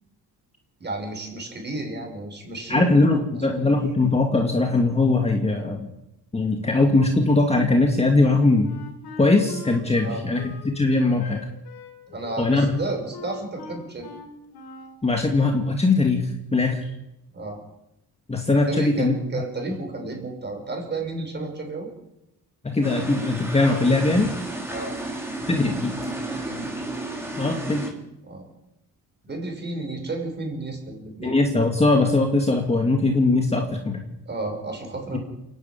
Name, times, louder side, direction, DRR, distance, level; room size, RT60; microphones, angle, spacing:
voice 1, 0.8-3.2 10.0-10.2 12.1-14.1 17.3-17.6 18.7-21.9 24.7-25.0 26.3-26.8 28.2-28.5 29.2-31.4 34.3-35.2, right 2 dB, 30° right, 3 dB, 6.0 m, -32 dB
voice 2, 2.7-5.9 6.3-8.7 9.2-10.4 10.8-11.4 12.4-12.8 15.0-16.9 18.3-19.1 22.6-24.3 25.5-26.0 27.4-27.8 31.2-34.0, left 2 dB, 15° left, 3 dB, 2.0 m, -20 dB
Wind instrument woodwind instrument, 8.2-15.0, left 4 dB, 85° left, 3.9 m, -42 dB
sound 1, 22.8-27.9, right 1 dB, 5° right, 4.0 m, -32 dB
29.0 x 11.0 x 9.3 m, 0.86 s
wide cardioid pair, 160°, 37 cm